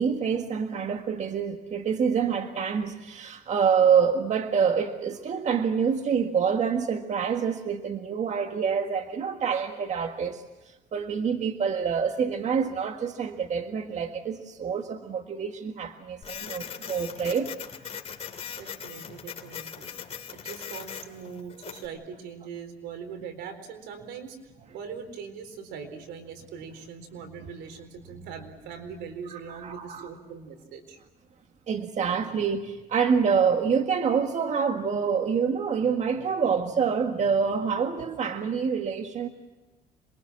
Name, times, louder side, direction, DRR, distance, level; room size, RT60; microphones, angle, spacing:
voice 1, 0.0-17.5 29.3-30.1 31.7-39.3, right 6 dB, 45° right, 5 dB, 1.7 m, -26 dB
Printer, 16.2-21.9, left 7 dB, 40° left, 3.2 m, -40 dB
voice 2, 18.6-19.9 20.3-24.4 24.7-31.0, right 6 dB, 85° right, 7 dB, 4.2 m, -41 dB
27.0 x 23.0 x 7.4 m, 1.1 s
cardioid pair, 110°, 17 cm